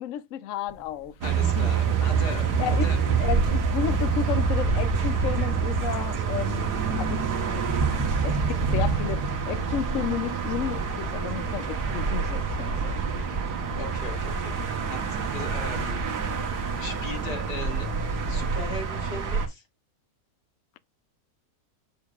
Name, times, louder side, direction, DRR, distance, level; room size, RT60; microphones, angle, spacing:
voice 1, 0.0-1.1 1.6-1.7 2.6-2.9 3.2-6.7 7.0-7.6 8.2-13.0, left 10 dB, 65° left, 0.8 m, -32 dB
sound 1, 0.7-18.6, right 4 dB, 45° right, 1.8 m, -34 dB
voice 2, 1.2-3.0 13.8-16.0 16.8-17.9 18.3-19.6, left 2 dB, 90° left, 2.9 m, -38 dB
sound 2, 1.2-19.5, right 5 dB, 80° right, 1.9 m, -27 dB
7.2 x 6.3 x 2.4 m
omnidirectional pair, 1.7 m